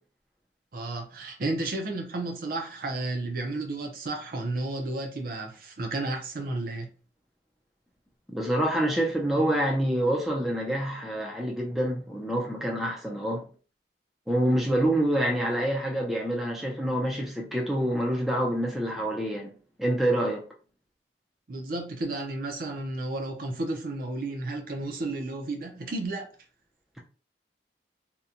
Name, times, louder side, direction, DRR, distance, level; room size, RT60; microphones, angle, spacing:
voice 1, 0.7-6.9 21.5-26.3, right 2 dB, 55° right, 0.6 m, -32 dB
voice 2, 8.3-13.4 14.3-19.5 19.8-20.4, right 1 dB, ahead, 0.4 m, -27 dB
2.8 x 2.2 x 2.5 m
head